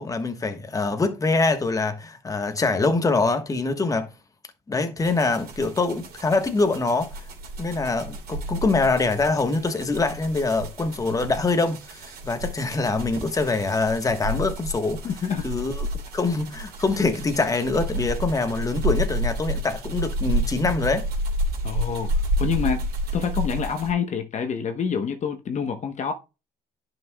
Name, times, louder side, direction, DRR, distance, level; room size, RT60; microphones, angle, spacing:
voice 1, 0.0-4.1 4.7-7.2 7.6-15.0 15.4-15.9 16.1-21.0, left 3 dB, 20° left, 1.3 m, -24 dB
sound 1, 5.0-23.9, right 1 dB, 65° right, 2.9 m, -30 dB
voice 2, 15.0-15.5 21.6-22.1 22.4-22.8 23.1-26.1, left 7 dB, 45° left, 1.0 m, -27 dB
10.5 x 6.0 x 2.3 m
cardioid pair, 110°, 17 cm